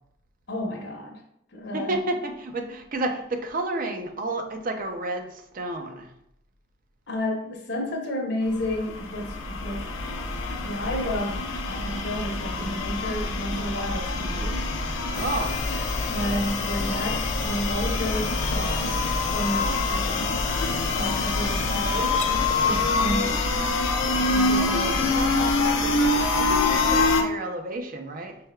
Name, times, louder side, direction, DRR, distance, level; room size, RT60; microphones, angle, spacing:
voice 1, 0.5-1.2 1.5-1.9 7.1-9.9 10.6-14.7 16.1-19.0 19.2-19.6 19.9-20.5 20.9-22.3 22.6-23.6 24.3-25.3, left 1 dB, 60° left, 2 dB, 0.9 m, -31 dB
voice 2, 1.7-6.1 14.7-15.6 20.6-21.0 22.5-22.9 24.2-28.4, right 2 dB, 45° right, 5 dB, 0.5 m, -32 dB
sound 1, 8.5-27.2, left 3 dB, 85° left, 0.5 m, -25 dB
sound 2, 15.1-23.3, left 5 dB, 35° left, 0.3 m, -35 dB
5.5 x 3.3 x 2.2 m, 0.75 s
head